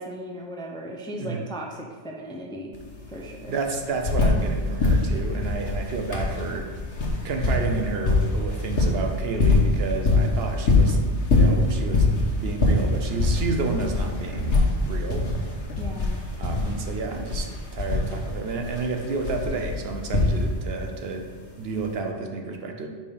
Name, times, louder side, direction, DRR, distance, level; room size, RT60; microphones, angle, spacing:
voice 1, 0.0-2.7 3.1-3.5 15.8-16.2, equal, 5° left, 0 dB, 0.4 m, -36 dB
sound 1, 2.7-2.8 3.1-4.5 4.8-20.8 21.8-21.9, left 2 dB, 80° left, 1.4 m, -23 dB
voice 2, 3.5-6.7 7.2-11.0 11.3-15.3 16.4-21.3 21.6-22.9, right 3 dB, 65° right, 4 dB, 0.9 m, -30 dB
5.1 x 4.5 x 5.2 m, 1.5 s
omnidirectional pair, 1.1 m